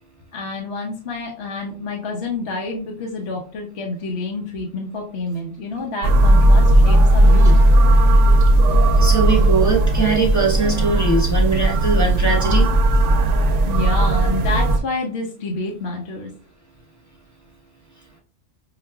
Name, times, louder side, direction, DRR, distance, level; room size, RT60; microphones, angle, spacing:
voice 1, 0.3-7.6 13.7-16.3, left 3 dB, 65° left, 0 dB, 0.9 m, -28 dB
sound 1, 6.0-14.8, right 1 dB, 75° right, 0.9 m, -15 dB
voice 2, 8.9-12.7, right 3 dB, 15° right, -2 dB, 0.8 m, -21 dB
5.7 x 2.4 x 2.2 m, 0.43 s
omnidirectional pair, 1.3 m